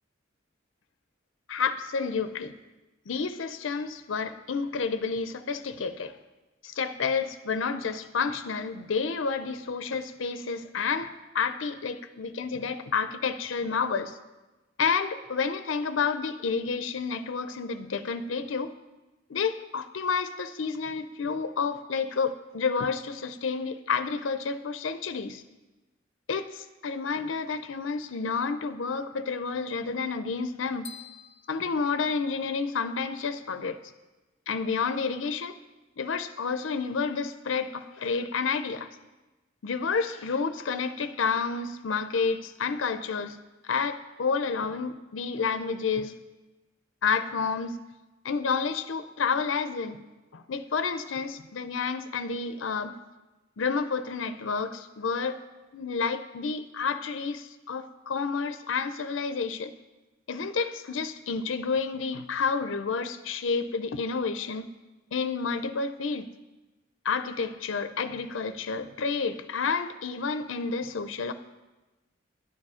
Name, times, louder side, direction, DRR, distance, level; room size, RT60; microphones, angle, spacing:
voice 1, 1.5-2.5 3.1-6.2 6.6-14.2 14.8-18.7 19.3-25.4 26.3-30.9 31.5-33.8 34.5-35.6 36.0-38.9 39.6-43.4 43.6-46.1 47.0-47.8 48.2-50.0 50.3-53.0 53.6-55.4 55.7-59.7 60.3-64.7 65.1-66.3 67.0-71.3, left 5 dB, 80° left, 11 dB, 0.5 m, -30 dB
sound 1, 30.8-32.8, left 8 dB, 30° left, 0.8 m, -48 dB
11.5 x 9.9 x 4.9 m, 1.1 s
head